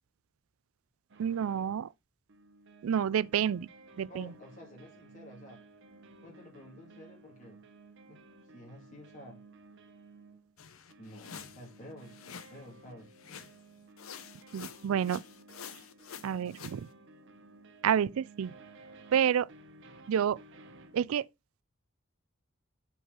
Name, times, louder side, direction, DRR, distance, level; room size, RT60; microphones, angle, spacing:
sound 1, 1.1-1.8 2.3-21.0, right 3 dB, 60° right, 0.9 m, -56 dB
voice 1, 1.2-1.9 2.8-3.7 4.0-4.3 14.5-15.2 16.2-16.9 17.8-18.5 19.1-19.5 20.1-20.4 20.9-21.2, right 8 dB, 85° right, 0.4 m, -29 dB
voice 2, 4.1-5.6 6.2-7.6 8.1-8.2 8.5-9.4 11.0-13.1, left 1 dB, 40° left, 2.2 m, -51 dB
sound 2, 10.6-12.7 13.2-13.7 14.0-16.8, left 7 dB, 85° left, 0.8 m, -48 dB
5.5 x 4.7 x 5.9 m
head